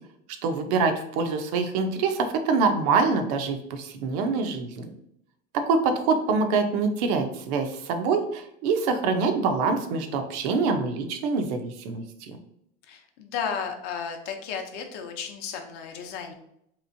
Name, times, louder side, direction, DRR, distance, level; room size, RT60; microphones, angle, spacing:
voice 1, 0.4-4.9 5.5-12.4, right 4 dB, 80° right, 6 dB, 0.6 m, -25 dB
voice 2, 12.9-16.3, left 6 dB, 55° left, 5 dB, 0.6 m, -33 dB
3.4 x 2.9 x 2.6 m, 0.74 s
cardioid pair, 160°, 20 cm